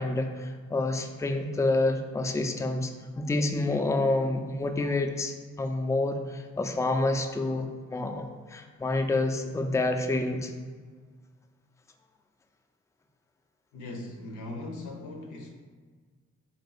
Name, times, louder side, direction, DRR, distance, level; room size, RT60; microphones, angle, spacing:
voice 1, 0.0-10.5, left 2 dB, 10° left, 4 dB, 0.4 m, -28 dB
voice 2, 13.7-15.5, left 2 dB, 80° left, 2 dB, 0.7 m, -39 dB
3.5 x 2.8 x 3.9 m, 1.5 s
supercardioid pair, 45°, 30 cm